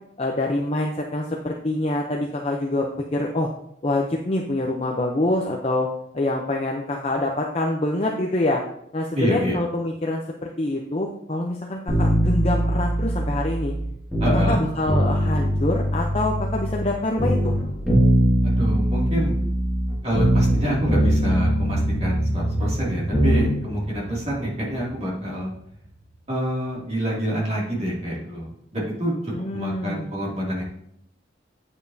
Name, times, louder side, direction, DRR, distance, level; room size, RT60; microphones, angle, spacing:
voice 1, 0.2-3.5 3.8-5.9 6.1-8.6 8.9-13.7 14.5-17.6 29.3-30.2, left 2 dB, 30° left, 0 dB, 0.6 m, -25 dB
voice 2, 9.1-9.6 14.2-14.6 18.4-19.3 20.0-25.5 26.3-30.6, equal, 30° right, -5 dB, 2.4 m, -26 dB
sound 1, 11.9-14.6 14.9-16.9 17.2-20.6 20.9-23.5 23.8-23.9, right 1 dB, 5° left, 1.9 m, -22 dB
sound 2, 20.1-26.1, right 1 dB, 70° left, 1.8 m, -31 dB
8.9 x 7.1 x 2.7 m, 0.75 s
head